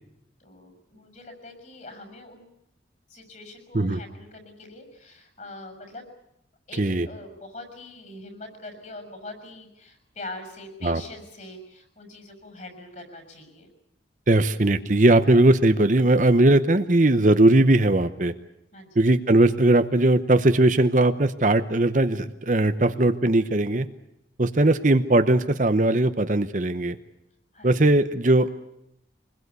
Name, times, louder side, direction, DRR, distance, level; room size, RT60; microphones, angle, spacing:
voice 1, 0.4-2.5 3.1-6.1 6.7-13.7 18.7-19.0 27.5-27.7, left 2 dB, 40° left, 7 dB, 6.3 m, -43 dB
voice 2, 14.3-18.3 19.0-23.9 24.4-27.0 27.6-28.5, right 2 dB, 45° right, 10 dB, 0.9 m, -19 dB
25.0 x 21.0 x 8.3 m, 0.82 s
head